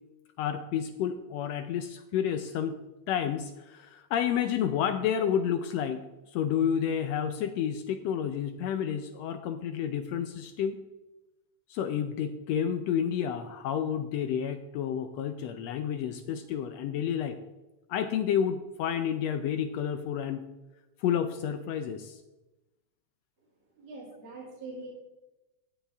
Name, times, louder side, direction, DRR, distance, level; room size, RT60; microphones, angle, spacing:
voice 1, 0.4-2.8 3.1-10.8 11.7-17.4 17.9-20.4 21.0-22.2, left 8 dB, 75° left, 9 dB, 1.6 m, -30 dB
voice 2, 23.8-24.9, right 3 dB, 60° right, -6 dB, 3.8 m, -43 dB
14.5 x 9.2 x 3.5 m, 1.0 s
omnidirectional pair, 3.4 m